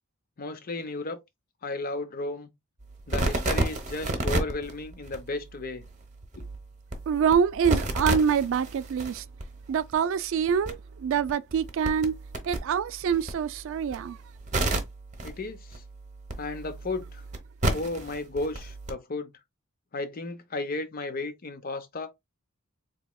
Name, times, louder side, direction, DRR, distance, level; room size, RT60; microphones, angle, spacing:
voice 1, 0.4-1.2 1.6-2.5 3.1-5.8 6.3-6.4 15.2-15.8 16.4-17.2 17.7-19.3 19.9-22.1, left 2 dB, 40° left, 0.7 m, -34 dB
sound 1, 2.8-18.9, right 2 dB, 35° right, 0.8 m, -33 dB
voice 2, 7.1-9.2 9.7-12.1 12.5-14.2, right 7 dB, 60° right, 0.3 m, -25 dB
4.1 x 3.0 x 2.2 m
head